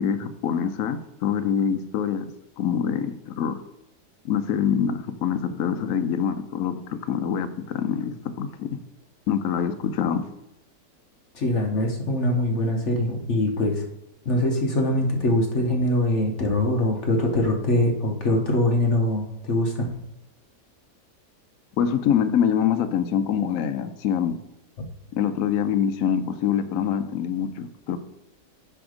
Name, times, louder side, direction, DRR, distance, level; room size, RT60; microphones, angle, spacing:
voice 1, 0.0-2.3 2.6-3.6 4.2-8.7 9.3-10.2 21.8-24.4 25.1-28.0, left 8 dB, 65° left, 9 dB, 1.0 m, -25 dB
voice 2, 11.3-13.8 14.2-19.9 24.8-24.9, left 1 dB, 50° left, 2 dB, 1.2 m, -23 dB
10.0 x 3.5 x 4.9 m, 0.83 s
omnidirectional pair, 1.8 m